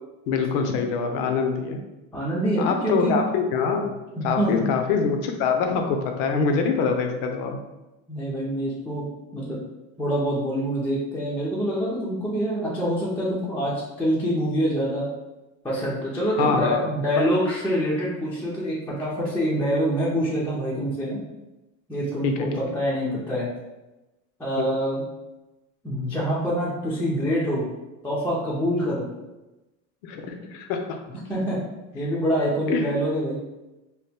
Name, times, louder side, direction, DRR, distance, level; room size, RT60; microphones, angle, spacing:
voice 1, 0.3-1.8 2.6-3.9 4.2-7.6 16.4-16.8 17.2-17.3 22.2-22.5 24.6-24.7 30.0-31.0 32.7-32.9, left 5 dB, 65° left, 4 dB, 0.6 m, -24 dB
voice 2, 2.1-3.2 4.2-4.5 8.1-9.0 9.3-9.6 10.0-15.0 15.6-21.2 21.9-23.5 24.4-25.0 25.8-27.6 28.0-29.1 31.1-31.6 31.9-33.4, equal, 5° left, -6 dB, 0.4 m, -25 dB
2.9 x 2.2 x 3.4 m, 1.0 s
supercardioid pair, 135°, 38 cm